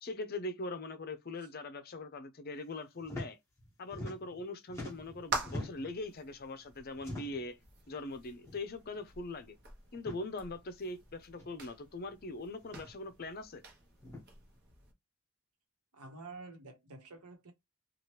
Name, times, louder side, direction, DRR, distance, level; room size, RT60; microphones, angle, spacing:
voice 1, 0.0-3.4 3.8-7.6 7.9-9.6 9.9-13.6, left 2 dB, 40° left, 0.5 m, -41 dB
sound 1, 3.0-3.3 3.6-4.4 4.7-6.0 7.0-7.5 8.4-8.6 8.9-9.0 9.9-10.2 11.4-11.5 12.6-12.9 14.0-14.2, left 1 dB, 15° left, 1.1 m, -43 dB
sound 2, 4.8-14.9, right 3 dB, 45° right, 1.0 m, -46 dB
voice 2, 15.9-17.5, right 3 dB, 85° right, 1.1 m, -49 dB
2.9 x 2.3 x 3.0 m
head